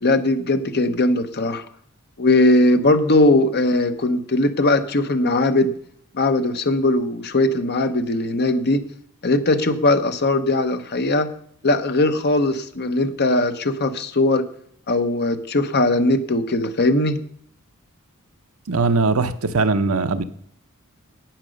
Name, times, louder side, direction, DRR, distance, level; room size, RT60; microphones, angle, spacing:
voice 1, 0.0-1.6 2.2-5.7 6.1-8.8 9.2-11.3 11.6-14.4 14.9-17.2, left 2 dB, 50° left, 8 dB, 1.0 m, -19 dB
voice 2, 18.7-20.2, right 3 dB, 70° right, 10 dB, 0.8 m, -20 dB
9.1 x 8.9 x 6.4 m, 0.63 s
head